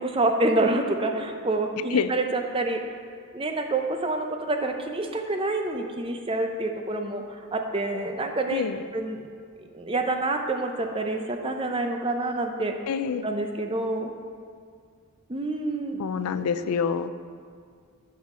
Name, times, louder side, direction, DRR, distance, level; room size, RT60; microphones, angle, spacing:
voice 1, 0.0-2.8 3.3-8.7 8.9-9.3 9.7-12.7 13.2-14.1 15.3-16.0, right 2 dB, 25° right, 4 dB, 0.5 m, -27 dB
voice 2, 8.5-8.8 12.9-13.3 16.0-17.1, left 6 dB, 85° left, 12 dB, 0.4 m, -26 dB
12.0 x 5.7 x 3.7 m, 2.1 s
head